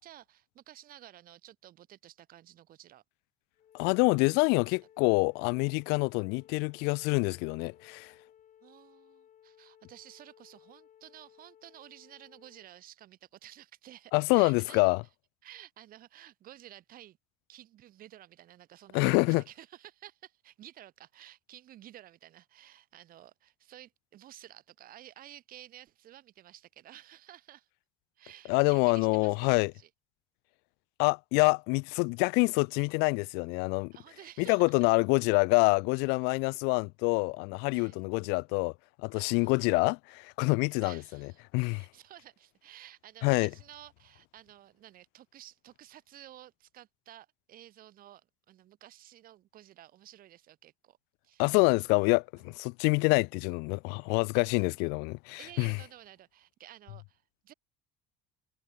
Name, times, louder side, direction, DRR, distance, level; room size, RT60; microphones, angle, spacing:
voice 1, 0.0-3.0 4.7-4.8 8.6-14.9 15.4-17.2 17.5-27.7 28.2-29.9 33.9-34.7 37.7-38.0 39.1-39.7 40.8-41.4 41.7-51.0 51.2-51.5 51.9-52.0 52.4-52.5 54.3-54.7 55.4-57.5, right 13 dB, 55° right, 4.0 m, -53 dB
Wind instrument woodwind instrument, 3.5-12.7, left 10 dB, 45° left, 6.1 m, -60 dB
voice 2, 3.7-8.1 14.1-15.0 18.9-19.4 28.5-29.7 31.0-33.9 34.4-38.7 39.0-41.0 41.5-41.8 43.2-43.5 51.4-55.8, left 32 dB, 75° left, 0.4 m, -26 dB
supercardioid pair, 100°, 17 cm